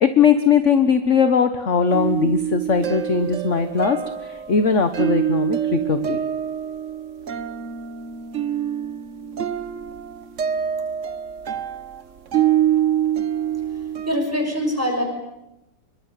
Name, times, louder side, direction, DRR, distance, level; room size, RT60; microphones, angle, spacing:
voice 1, 0.0-6.2, left 6 dB, 45° left, 9 dB, 1.5 m, -19 dB
sound 1, 1.9-14.1, right 10 dB, 45° right, 1.4 m, -25 dB
voice 2, 14.0-15.0, equal, 5° right, 3 dB, 6.6 m, -23 dB
26.0 x 23.0 x 9.1 m, 0.91 s
omnidirectional pair, 2.0 m